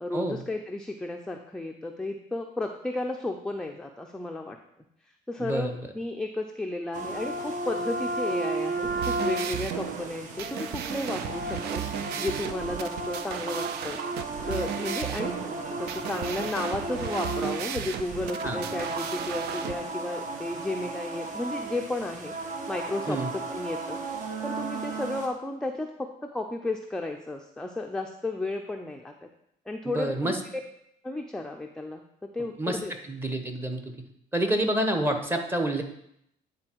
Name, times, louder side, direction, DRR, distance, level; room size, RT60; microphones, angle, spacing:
voice 1, 0.0-4.6 5.3-11.8 12.2-14.0 14.5-22.3 22.7-24.0 24.4-29.1 29.7-30.3 31.0-32.0 32.3-32.9, left 2 dB, 5° left, 3 dB, 0.5 m, -33 dB
voice 2, 5.4-5.9 18.4-18.6 23.1-23.3 29.8-30.4 32.6-33.8 34.3-35.8, right 1 dB, 15° right, 5 dB, 1.0 m, -28 dB
sound 1, 6.9-25.3, right 2 dB, 50° right, 1.2 m, -34 dB
sound 2, 8.8-19.7, right 10 dB, 75° right, 0.5 m, -35 dB
9.6 x 3.9 x 4.5 m, 0.74 s
cardioid pair, 110°, 17 cm